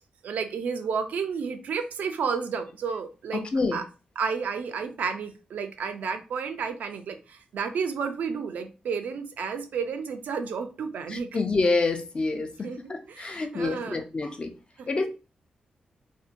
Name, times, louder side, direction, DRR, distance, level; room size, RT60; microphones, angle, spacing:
voice 1, 0.2-3.4 3.7-3.8 4.2-11.3 12.6-12.8 13.1-14.0 14.8-14.9, right 6 dB, 80° right, 0.4 m, -31 dB
voice 2, 3.3-3.8 11.1-14.5 14.9-15.1, left 3 dB, 40° left, 0.5 m, -27 dB
2.6 x 2.1 x 2.5 m
cardioid pair, 65°, 3 cm